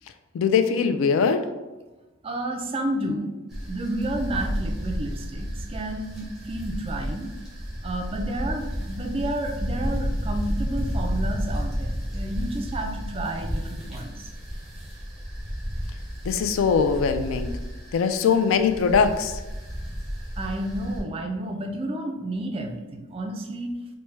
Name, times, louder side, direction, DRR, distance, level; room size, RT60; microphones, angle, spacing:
voice 1, 0.3-1.5 16.2-17.5 17.9-19.4, left 6 dB, 70° left, 9 dB, 0.3 m, -21 dB
voice 2, 2.2-3.3 3.6-7.3 7.8-14.3 20.4-23.8, right 1 dB, 25° right, 4 dB, 0.3 m, -31 dB
sound 1, 3.5-21.0, equal, ahead, 0.9 m, -32 dB
4.5 x 2.1 x 3.1 m, 1.1 s
head